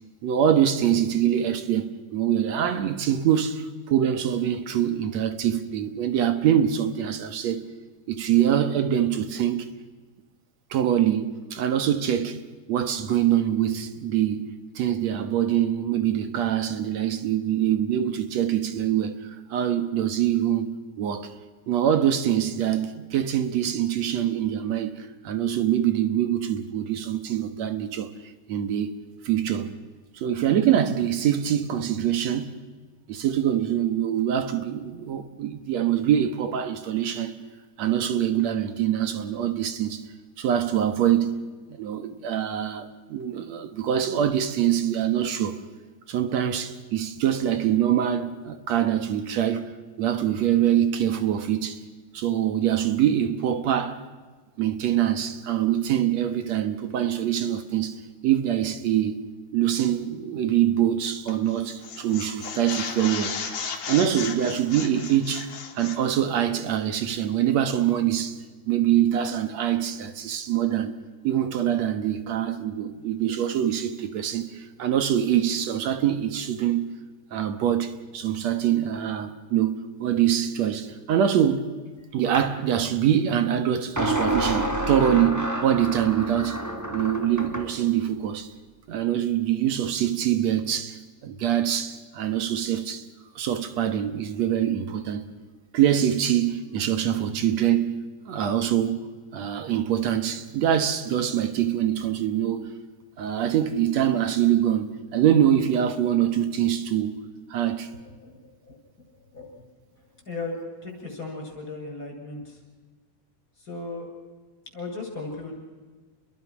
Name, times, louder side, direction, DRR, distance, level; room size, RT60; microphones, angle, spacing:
voice 1, 0.2-7.6 8.1-9.7 10.7-12.4 12.7-14.5 14.8-20.7 21.0-21.3 21.7-28.1 28.5-28.9 29.2-29.7 30.1-32.6 33.1-37.4 37.8-40.1 40.4-41.4 41.7-45.6 46.1-49.7 50.0-51.8 52.1-54.0 54.6-59.2 59.5-63.6 63.9-68.4 68.7-70.9 71.2-76.9 77.3-81.7 82.1-86.6 86.9-88.5 88.9-93.1 93.4-95.2 95.7-99.1 99.3-102.7 103.2-107.2 107.5-107.9, right 10 dB, 60° right, 2.1 m, -24 dB
sound 1, 61.3-61.5 61.8-66.0, left 6 dB, 60° left, 3.6 m, -34 dB
sound 2, 82.3-82.5 84.0-87.7, right 1 dB, 20° right, 0.5 m, -28 dB
voice 2, 108.0-108.8 109.1-109.7 110.3-112.6 113.6-114.1 114.7-115.5, left 3 dB, 25° left, 8.1 m, -37 dB
29.5 x 22.0 x 6.2 m
omnidirectional pair, 4.0 m